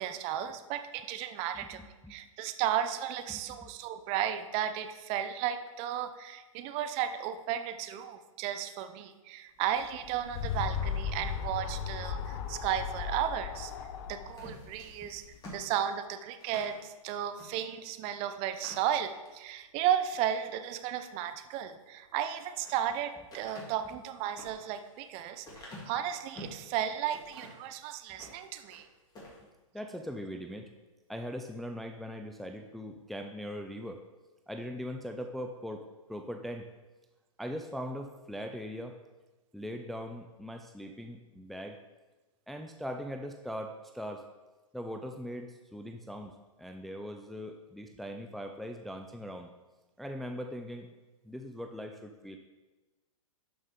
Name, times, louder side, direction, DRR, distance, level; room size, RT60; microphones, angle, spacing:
voice 1, 0.0-1.8 2.1-13.7 14.1-15.2 15.5-28.9, right 10 dB, 35° right, 9 dB, 0.8 m, -34 dB
voice 2, 1.5-2.2 3.3-3.7 15.0-15.1 23.9-24.0 28.2-28.3 29.7-30.7 31.1-34.1 34.5-36.6 37.4-39.0 39.5-41.8 42.5-44.3 44.7-49.5 50.0-50.9 51.2-52.4, equal, ahead, 4 dB, 0.4 m, -40 dB
sound 1, 9.8-15.4, left 7 dB, 45° left, 0.8 m, -36 dB
sound 2, 14.3-16.8 17.3-17.5 17.9-18.0 18.4-19.4 19.9-20.3 22.1-22.9 23.3-26.6 27.1-27.7 28.1-28.8 29.1-29.4, left 2 dB, 20° left, 2.8 m, -49 dB
12.0 x 5.5 x 3.8 m, 1.2 s
hypercardioid pair, 120°, 18 cm